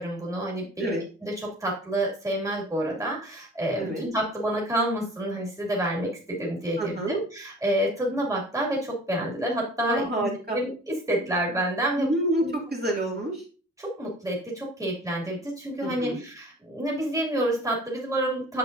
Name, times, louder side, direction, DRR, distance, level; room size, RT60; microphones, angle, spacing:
voice 1, 0.0-12.1 12.4-12.5 13.8-18.6, right 1 dB, 10° right, -4 dB, 2.5 m, -29 dB
voice 2, 3.7-4.1 6.8-7.2 9.8-10.6 12.0-12.4 12.7-13.4 15.8-16.2, right 1 dB, 30° right, -3 dB, 2.4 m, -28 dB
8.7 x 7.5 x 2.6 m, 0.37 s
wide cardioid pair, 120°, 32 cm